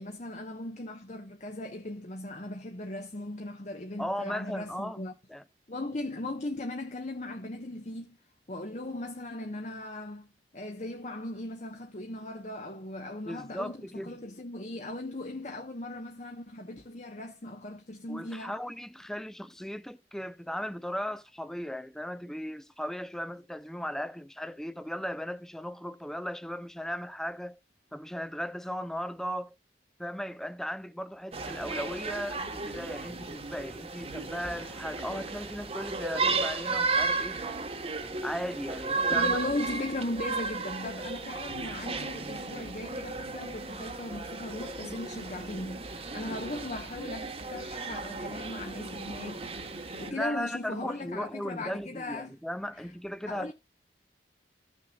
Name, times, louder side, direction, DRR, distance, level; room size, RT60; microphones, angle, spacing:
voice 1, 0.0-5.1 5.7-8.2 8.5-10.3 10.5-18.5 39.1-49.4 49.7-52.4 52.8-52.9 53.3-53.5, left 2 dB, 40° left, 1.0 m, -38 dB
voice 2, 4.0-5.0 5.3-5.4 13.2-14.2 18.1-27.6 27.9-29.5 30.0-37.4 38.2-39.4 50.0-53.5, equal, 5° left, 0.6 m, -37 dB
sound 1, 31.3-50.1, right 4 dB, 35° right, 1.2 m, -34 dB
15.0 x 6.3 x 2.3 m
head